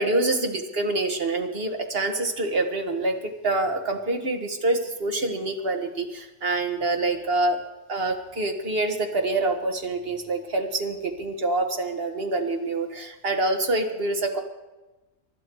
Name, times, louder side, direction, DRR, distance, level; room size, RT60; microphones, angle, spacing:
voice 1, 0.0-7.6 7.9-14.4, right 2 dB, 45° right, 4 dB, 1.9 m, -26 dB
24.5 x 11.5 x 4.7 m, 1.1 s
omnidirectional pair, 1.5 m